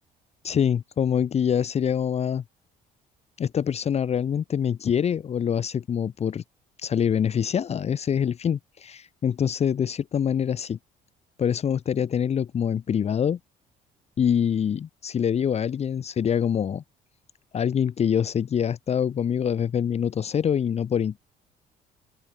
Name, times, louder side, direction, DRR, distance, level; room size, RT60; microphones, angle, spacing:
voice 1, 0.4-2.4 3.4-6.4 6.8-10.8 11.4-13.4 14.2-16.8 17.5-21.2, left 8 dB, 40° left, 1.0 m, -25 dB
open air
cardioid pair, 110°, 17 cm